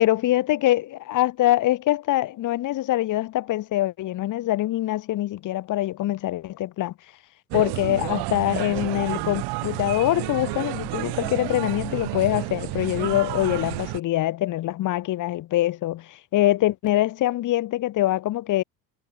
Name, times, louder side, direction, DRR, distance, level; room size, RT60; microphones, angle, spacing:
voice 1, 0.0-6.9 7.5-18.6, left 15 dB, 45° left, 0.9 m, -24 dB
sound 1, 7.5-14.0, right 25 dB, 65° right, 0.6 m, -30 dB
supercardioid pair, 105°, 43 cm